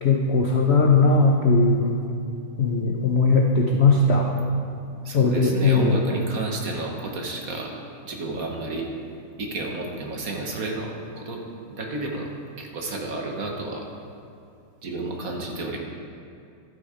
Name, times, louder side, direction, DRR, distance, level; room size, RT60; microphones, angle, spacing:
voice 1, 0.0-1.8 2.6-4.3 5.1-6.0, left 3 dB, 65° left, 1 dB, 0.6 m, -19 dB
voice 2, 5.0-7.7 8.0-8.9 9.4-11.4 11.7-12.3 12.6-13.9 14.8-15.8, right 2 dB, 50° right, 1 dB, 1.4 m, -31 dB
11.5 x 8.4 x 5.0 m, 2.5 s
omnidirectional pair, 2.2 m